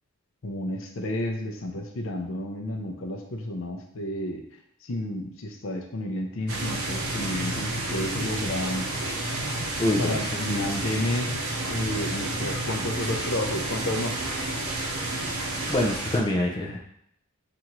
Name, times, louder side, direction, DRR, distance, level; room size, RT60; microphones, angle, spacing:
voice 1, 0.4-4.4 4.8-8.9 10.0-14.2, left 1 dB, 65° left, 3 dB, 0.6 m, -31 dB
sound 1, 6.5-16.2, right 2 dB, 85° right, 0.8 m, -30 dB
voice 2, 9.8-10.7 15.7-16.8, left 1 dB, 20° left, 0 dB, 0.4 m, -26 dB
5.6 x 2.6 x 3.0 m, 0.71 s
head